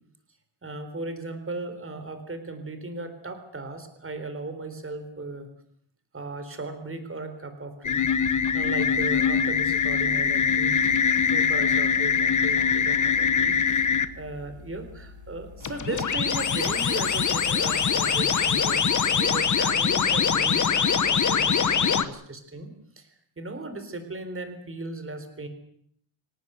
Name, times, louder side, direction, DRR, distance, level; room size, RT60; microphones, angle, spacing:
voice 1, 0.6-5.5 6.1-10.8 11.2-23.1 23.4-25.5, right 2 dB, 25° right, 8 dB, 4.0 m, -37 dB
sound 1, 7.8-14.1 15.6-22.0, left 6 dB, 35° left, 1.2 m, -23 dB
Musical instrument, 9.4-19.7, right 1 dB, 85° right, 5.4 m, -51 dB
25.5 x 18.0 x 8.1 m, 0.67 s
wide cardioid pair, 175°, 49 cm